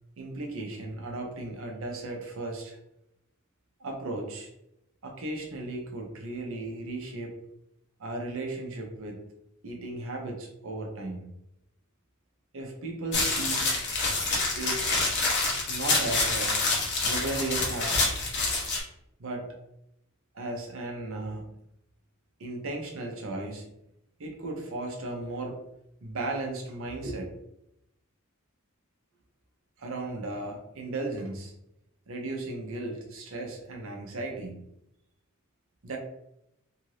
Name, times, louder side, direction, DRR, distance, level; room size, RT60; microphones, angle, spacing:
voice 1, 0.2-2.8 3.8-4.5 5.0-7.4 8.0-9.3 9.6-11.3 12.5-13.7 14.6-14.8 15.7-16.7 17.0-18.1 19.2-19.5 20.3-21.5 22.4-23.7 24.2-25.6 26.0-27.3 29.8-31.5 32.1-34.6 35.8-36.0, right 2 dB, 65° right, 2 dB, 0.7 m, -35 dB
sound 1, 13.1-18.8, left 3 dB, 55° left, 0.9 m, -27 dB
2.7 x 2.5 x 3.1 m, 0.82 s
head